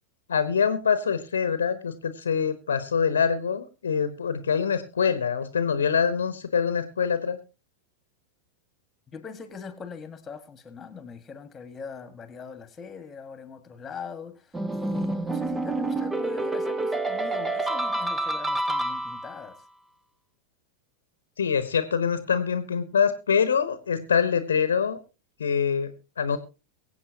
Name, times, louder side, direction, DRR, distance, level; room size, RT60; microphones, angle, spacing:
voice 1, 0.3-7.4 21.4-25.0 25.4-26.4, left 6 dB, 70° left, 0.9 m, -25 dB
voice 2, 9.1-19.6, left 5 dB, 20° left, 1.7 m, -41 dB
sound 1, 14.5-19.5, right 2 dB, 10° right, 0.8 m, -28 dB
23.0 x 8.1 x 2.8 m
figure-of-eight pair, 90°, 0 cm